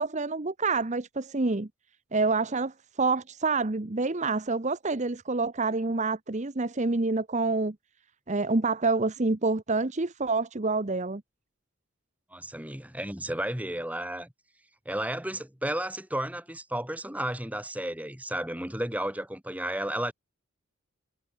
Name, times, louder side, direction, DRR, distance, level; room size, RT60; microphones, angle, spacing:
voice 1, 0.0-1.7 2.1-7.8 8.3-11.2, right 3 dB, 30° right, 0.9 m, -27 dB
voice 2, 12.3-14.3 14.9-20.1, right 1 dB, 5° right, 3.9 m, -33 dB
head